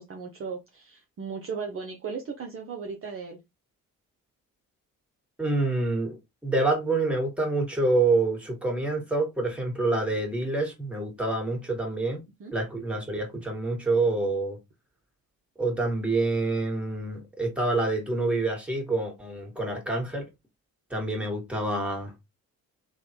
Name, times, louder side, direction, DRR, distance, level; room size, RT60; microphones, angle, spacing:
voice 1, 0.0-3.4 12.4-12.5, right 5 dB, 30° right, 0.7 m, -36 dB
voice 2, 5.4-14.6 15.6-20.3 20.9-22.1, right 2 dB, 5° right, 1.6 m, -27 dB
3.2 x 2.3 x 2.8 m
hypercardioid pair, 45°, 42 cm